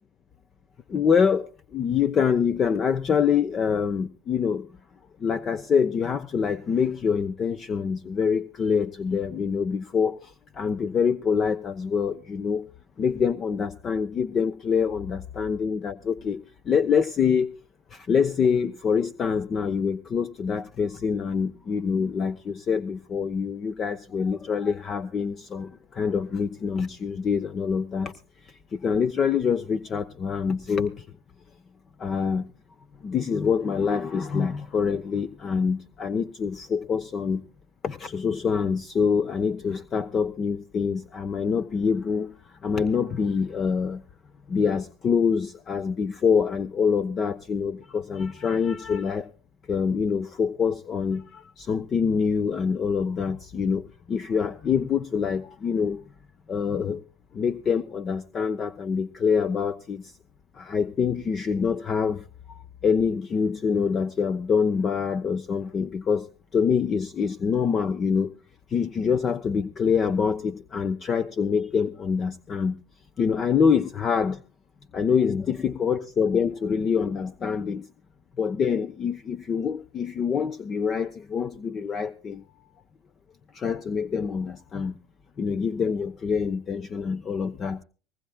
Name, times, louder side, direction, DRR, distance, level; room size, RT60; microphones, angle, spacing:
voice 1, 0.9-4.7 5.2-12.7 13.0-17.5 17.9-28.1 28.7-31.0 32.0-32.5 33.0-37.4 37.8-42.3 42.6-44.0 44.5-49.3 49.7-56.0 56.5-57.0 57.3-60.1 60.5-66.3 66.5-68.3 68.7-72.8 73.2-74.4 74.9-77.9 78.4-82.4 83.5-84.9 85.4-87.8, left 6 dB, 35° left, 0.9 m, -25 dB
20.0 x 19.5 x 2.3 m
supercardioid pair, 100°, 0 cm